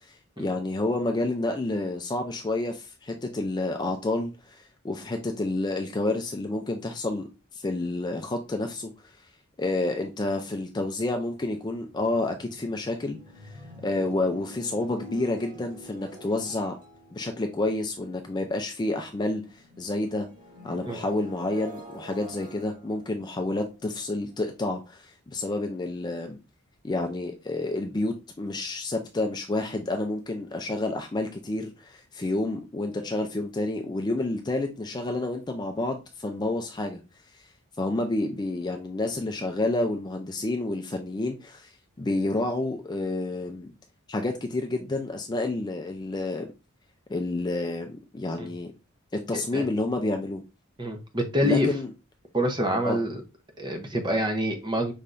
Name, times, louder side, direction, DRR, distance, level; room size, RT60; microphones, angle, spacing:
voice 1, 0.1-9.2 9.6-16.7 17.1-20.3 20.6-26.4 26.8-37.0 37.3-37.4 37.8-43.7 44.1-46.5 47.1-48.7 49.1-50.4 51.4-51.9 52.8-53.0, left 2 dB, 20° left, 0.4 m, -29 dB
sound 1, 11.4-18.9 19.2-24.4, equal, 40° right, 1.7 m, -47 dB
voice 2, 50.8-51.7 52.3-53.2 53.6-54.9, equal, 20° right, 0.7 m, -26 dB
5.5 x 3.4 x 2.5 m
head